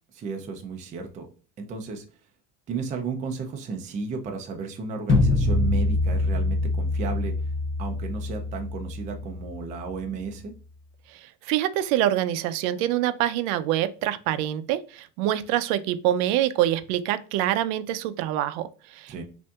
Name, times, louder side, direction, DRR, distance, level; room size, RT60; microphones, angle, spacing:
voice 1, 0.1-1.3 1.6-2.0 2.7-7.3 7.8-10.5 19.1-19.2, right 4 dB, 20° right, 0.4 m, -33 dB
sound 1, 5.1-10.1, left 2 dB, 30° left, 0.7 m, -25 dB
voice 2, 11.1-19.2, right 12 dB, 90° right, 0.6 m, -25 dB
5.4 x 2.6 x 2.3 m
cardioid pair, 155°, 41 cm